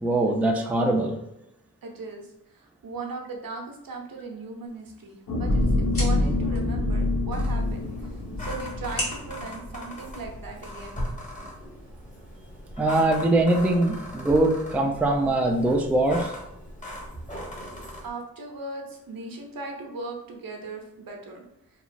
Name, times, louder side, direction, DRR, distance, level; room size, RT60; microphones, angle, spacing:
voice 1, 0.0-1.2 12.8-16.3, right 2 dB, 5° right, 2 dB, 0.3 m, -22 dB
voice 2, 1.8-2.3 2.5-11.0 18.0-21.4, right 3 dB, 70° right, 2 dB, 0.7 m, -38 dB
sound 1, 4.7-10.7, equal, 40° left, 1.2 m, -40 dB
sound 2, 5.3-9.8 10.3-10.4, left 2 dB, 60° left, 0.7 m, -26 dB
sound 3, 7.3-18.1, equal, 20° left, 0.9 m, -39 dB
3.0 x 2.4 x 2.5 m, 0.83 s
wide cardioid pair, 75°, 36 cm